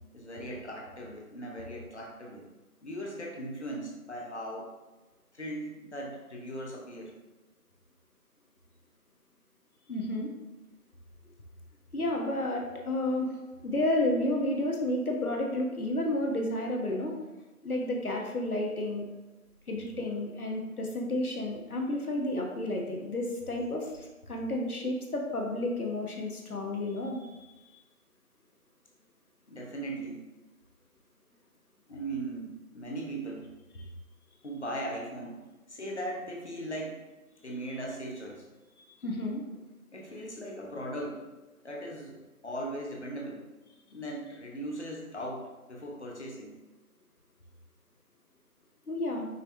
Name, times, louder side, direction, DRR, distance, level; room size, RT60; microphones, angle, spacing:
voice 1, 0.1-2.5 2.8-4.7 5.3-7.1 29.5-30.2 31.9-33.5 34.4-35.4 35.7-37.0 37.4-38.5 39.9-41.3 41.6-43.5 43.9-46.6, right 1 dB, 50° left, -1 dB, 1.0 m, -38 dB
voice 2, 9.9-10.3 11.9-13.3 13.6-17.1 17.6-19.0 19.7-27.3 39.0-39.4 48.9-49.3, left 1 dB, 70° left, 0 dB, 1.2 m, -31 dB
5.5 x 3.4 x 2.7 m, 1.1 s
figure-of-eight pair, 165°, 45 cm